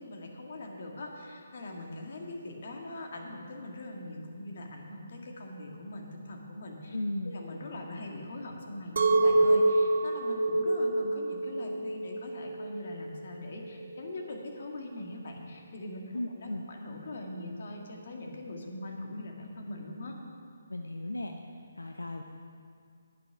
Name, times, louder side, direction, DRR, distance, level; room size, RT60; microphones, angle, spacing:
voice 1, 0.0-7.0 7.2-20.1, left 1 dB, 55° left, 1 dB, 1.8 m, -42 dB
voice 2, 6.9-7.4 16.1-16.6 20.7-21.3 21.8-22.2, left 1 dB, 90° left, 4 dB, 0.6 m, -35 dB
Chink clink, 9.0-14.1, right 2 dB, 60° right, 0.7 m, -27 dB
9.6 x 9.3 x 6.0 m, 2.2 s
figure-of-eight pair, 145°, 0 cm